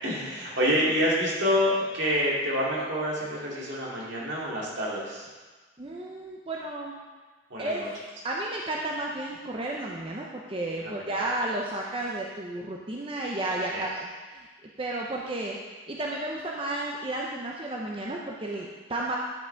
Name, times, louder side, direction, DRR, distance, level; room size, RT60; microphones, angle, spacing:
voice 1, 0.0-5.3 7.5-7.9 10.8-11.1 13.7-13.9, equal, 70° right, -5 dB, 2.4 m, -27 dB
voice 2, 5.8-7.0 7.6-7.8 8.2-14.0 14.3-14.5 14.8-15.6 15.9-19.2, right 2 dB, 30° right, -2 dB, 0.7 m, -32 dB
10.0 x 5.7 x 4.5 m, 1.3 s
head